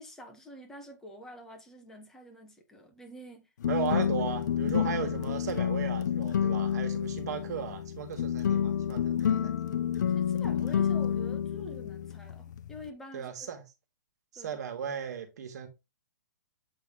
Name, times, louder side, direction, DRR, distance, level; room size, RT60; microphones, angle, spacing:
voice 1, 0.0-3.5 3.8-4.3 9.7-13.5 14.4-14.6, equal, 5° left, 1.0 m, -48 dB
sound 1, 3.6-12.9, left 9 dB, 70° left, 0.6 m, -29 dB
voice 2, 3.7-9.6 13.1-13.6 14.3-15.7, right 8 dB, 60° right, 1.9 m, -36 dB
7.8 x 3.5 x 3.7 m
hypercardioid pair, 165°, 10 cm